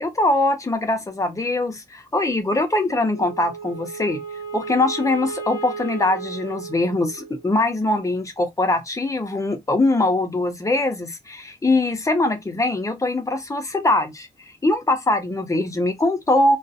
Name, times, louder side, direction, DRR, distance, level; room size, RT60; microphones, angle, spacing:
voice 1, 0.0-4.2 4.5-14.3 14.6-16.6, left 2 dB, 15° left, 0.5 m, -22 dB
Wind instrument woodwind instrument, 3.1-7.5, right 5 dB, 50° right, 1.2 m, -34 dB
2.4 x 2.0 x 2.5 m
wide cardioid pair, 130°, 19 cm